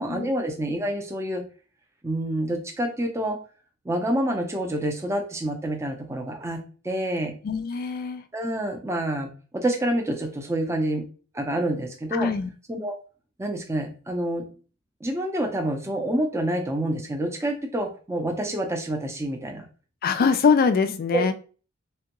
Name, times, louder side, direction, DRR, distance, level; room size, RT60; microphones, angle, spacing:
voice 1, 0.0-1.4 2.0-3.4 3.8-7.3 8.3-11.1 11.3-12.3 12.7-13.0 13.4-14.5 15.0-19.7 21.1-21.3, right 1 dB, 15° right, 3 dB, 0.5 m, -27 dB
voice 2, 7.4-8.2 12.1-12.5 20.0-21.3, left 5 dB, 45° left, 10 dB, 0.3 m, -23 dB
3.4 x 2.2 x 2.9 m, 0.38 s
head